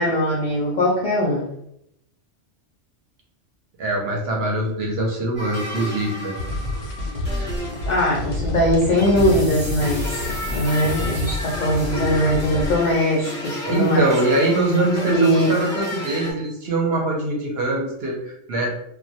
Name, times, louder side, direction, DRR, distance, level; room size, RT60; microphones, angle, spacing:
voice 1, 0.0-1.5 7.8-14.1 15.1-15.5, equal, 65° left, -5 dB, 0.4 m, -21 dB
voice 2, 3.8-6.4 13.6-18.7, right 2 dB, 60° right, -1 dB, 0.8 m, -23 dB
sound 1, 5.4-16.3, equal, 10° right, 0.6 m, -32 dB
sound 2, 6.3-12.8, left 1 dB, 80° left, 0.9 m, -28 dB
2.2 x 2.1 x 2.6 m, 0.75 s
omnidirectional pair, 1.3 m